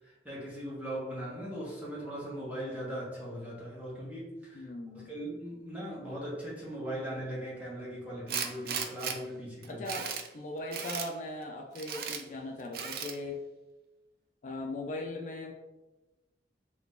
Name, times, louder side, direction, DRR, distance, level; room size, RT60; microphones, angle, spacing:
voice 1, 0.0-9.9, equal, 10° right, -7 dB, 1.0 m, -39 dB
voice 2, 4.5-5.1 9.7-13.4 14.4-15.5, left 2 dB, 45° left, 2 dB, 0.3 m, -39 dB
Tools, 8.3-9.2 9.6-10.3 10.7-11.1 11.7-12.2 12.7-13.2, right 7 dB, 55° right, 0.4 m, -36 dB
2.9 x 2.7 x 3.5 m, 1.1 s
head